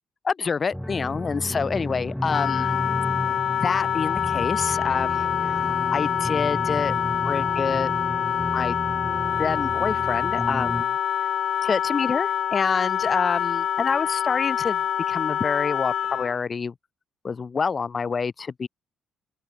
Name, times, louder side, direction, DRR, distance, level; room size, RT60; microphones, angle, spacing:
voice 1, 0.2-2.8 3.6-7.0 7.2-7.9 8.5-8.8 9.4-11.0 11.6-16.7 17.2-18.7, left 5 dB, 40° left, 4.9 m, -27 dB
sound 1, 0.7-10.8, equal, 5° left, 3.5 m, -32 dB
Wind instrument woodwind instrument, 2.3-16.4, left 9 dB, 65° left, 1.0 m, -26 dB
open air
cardioid pair, 90°, 0 cm